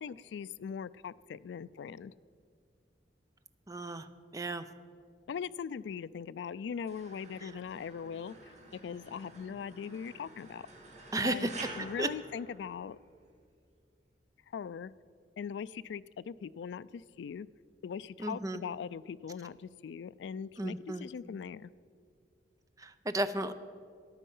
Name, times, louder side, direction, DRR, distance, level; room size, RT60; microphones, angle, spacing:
voice 1, 0.0-2.1 5.3-8.5 8.8-10.6 11.2-11.5 11.8-13.0 14.5-14.9 15.4-17.5 17.8-21.7, left 7 dB, 80° left, 19 dB, 0.3 m, -40 dB
voice 2, 3.7-4.1 4.3-4.6 7.4-7.5 11.1-11.5 12.0-12.1 18.2-18.6 20.6-21.1 22.8-23.5, right 1 dB, 20° right, 11 dB, 0.5 m, -33 dB
sound 1, 6.9-13.2, right 2 dB, 40° right, 1.7 m, -49 dB
13.5 x 11.0 x 5.5 m, 2.2 s
head